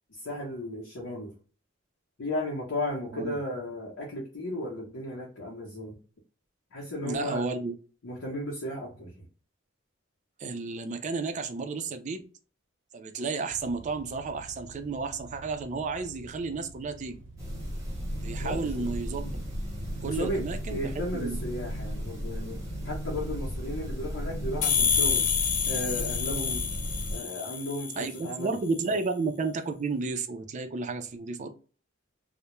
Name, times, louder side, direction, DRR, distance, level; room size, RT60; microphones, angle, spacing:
voice 1, 0.1-1.3 2.2-6.0 6.7-7.4 8.0-9.1 18.4-18.9 20.1-22.6 22.8-25.3 25.7-26.6 27.1-28.6 28.9-29.0, left 1 dB, 85° left, -5 dB, 0.7 m, -35 dB
voice 2, 7.0-7.7 10.4-12.2 12.9-17.2 18.2-19.4 20.0-21.4 28.0-31.5, right 4 dB, 40° right, 8 dB, 0.3 m, -32 dB
sound 1, 13.5-20.5, right 3 dB, 75° right, 0.7 m, -49 dB
sound 2, 17.4-27.2, equal, 15° right, 0.8 m, -35 dB
sound 3, 24.6-28.2, left 7 dB, 40° left, 0.3 m, -28 dB
2.2 x 2.0 x 2.9 m, 0.38 s
head